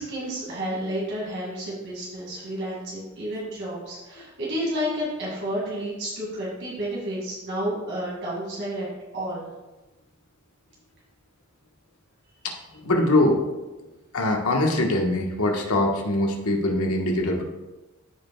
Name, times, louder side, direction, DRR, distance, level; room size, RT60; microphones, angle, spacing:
voice 1, 0.0-8.9 9.1-9.5, equal, 60° right, -6 dB, 2.3 m, -31 dB
voice 2, 12.8-13.5 14.1-17.4, left 1 dB, 90° left, 1 dB, 1.3 m, -22 dB
14.0 x 5.5 x 2.3 m, 1.1 s
head